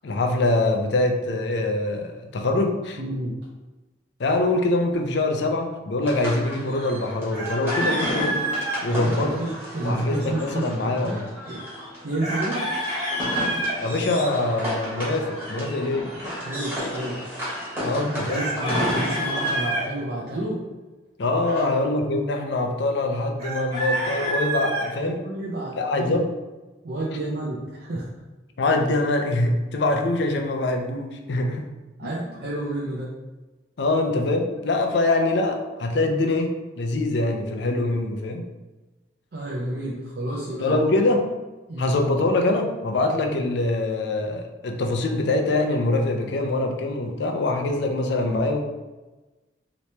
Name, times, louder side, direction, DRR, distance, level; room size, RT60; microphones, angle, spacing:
voice 1, 0.0-3.0 4.2-8.4 8.8-9.4 9.8-11.3 13.8-16.1 17.8-18.5 21.2-25.2 25.8-26.4 28.6-31.7 33.8-38.4 40.6-41.3 41.8-48.6, left 2 dB, 65° left, 3 dB, 0.4 m, -24 dB
voice 2, 3.0-3.3 8.9-11.7 12.0-12.7 16.4-17.2 17.8-20.6 21.4-21.6 25.0-26.2 26.8-28.1 32.0-33.1 39.3-40.8 41.7-41.9, right 1 dB, 55° right, -6 dB, 0.5 m, -30 dB
sound 1, 6.0-19.6, equal, 10° right, 1.1 m, -32 dB
Chicken rooster, 7.3-8.8 12.2-13.8 18.3-19.8 23.4-24.9, right 1 dB, 40° right, 1.2 m, -27 dB
2.9 x 2.9 x 3.2 m, 1.2 s
head